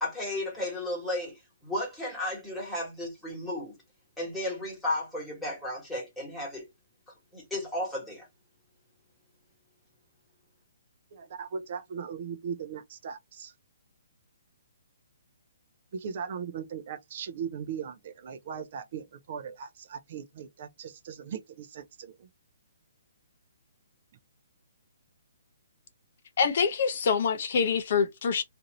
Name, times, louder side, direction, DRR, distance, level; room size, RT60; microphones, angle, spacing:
voice 1, 0.0-1.3 1.6-3.7 4.2-6.7 7.3-8.3, left 1 dB, 5° left, 1.3 m, -33 dB
voice 2, 11.1-13.5 15.9-22.3, right 7 dB, 40° right, 0.4 m, -38 dB
voice 3, 26.4-28.4, left 6 dB, 45° left, 0.5 m, -25 dB
2.7 x 2.5 x 2.9 m
hypercardioid pair, 165°, 0 cm